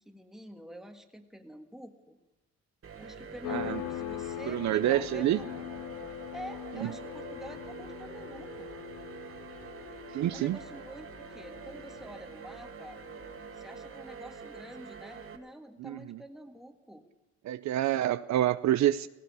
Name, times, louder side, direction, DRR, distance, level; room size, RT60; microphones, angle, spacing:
voice 1, 0.0-2.2 3.0-5.7 6.3-8.7 10.3-13.0 13.5-17.1, right 1 dB, ahead, 5 dB, 1.7 m, -47 dB
sound 1, 2.8-15.4, right 6 dB, 45° right, 2.0 m, -46 dB
sound 2, 3.4-13.8, left 11 dB, 80° left, 0.8 m, -42 dB
voice 2, 3.5-3.8 4.5-5.4 6.8-6.9 10.1-10.6 15.8-16.2 17.5-19.1, right 13 dB, 65° right, 13 dB, 0.6 m, -27 dB
17.0 x 16.5 x 4.8 m, 1.0 s
cardioid pair, 90°, 30 cm